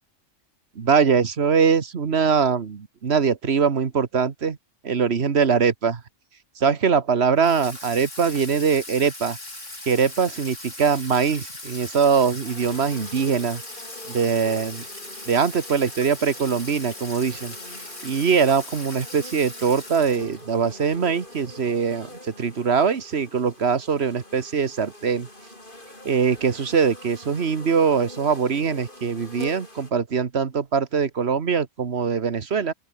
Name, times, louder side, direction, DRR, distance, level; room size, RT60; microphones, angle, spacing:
voice 1, 0.8-4.6 4.8-6.0 6.6-9.4 9.9-13.6 14.1-14.8 15.3-17.5 18.0-22.1 22.4-25.3 26.0-32.7, right 6 dB, 55° right, 1.7 m, -22 dB
Water tap faucet / Sink (filling or washing), 7.4-20.6, left 2 dB, 75° left, 7.6 m, -39 dB
sound 1, 12.4-29.9, left 1 dB, 40° left, 7.3 m, -44 dB
open air
omnidirectional pair, 1.3 m